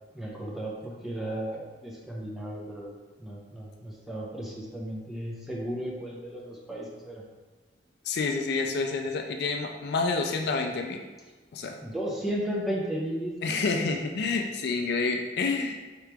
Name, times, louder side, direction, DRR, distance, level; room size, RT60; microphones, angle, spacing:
voice 1, 0.1-2.9 3.2-7.2 11.8-13.6, right 1 dB, ahead, -5 dB, 0.6 m, -34 dB
voice 2, 8.0-11.0 11.5-11.8 13.4-15.8, left 4 dB, 65° left, 4 dB, 0.4 m, -28 dB
4.6 x 2.9 x 3.4 m, 1.3 s
head